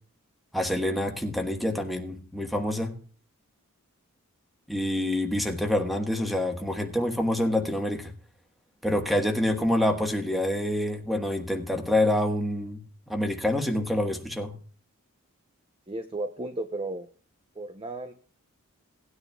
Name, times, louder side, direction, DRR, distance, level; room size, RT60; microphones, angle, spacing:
voice 1, 0.5-2.9 4.7-8.1 8.8-12.8 13.1-14.5, left 1 dB, ahead, 4 dB, 1.3 m, -27 dB
voice 2, 15.9-17.1 17.6-18.1, right 2 dB, 25° right, 7 dB, 0.6 m, -34 dB
18.0 x 9.8 x 2.3 m, 0.42 s
head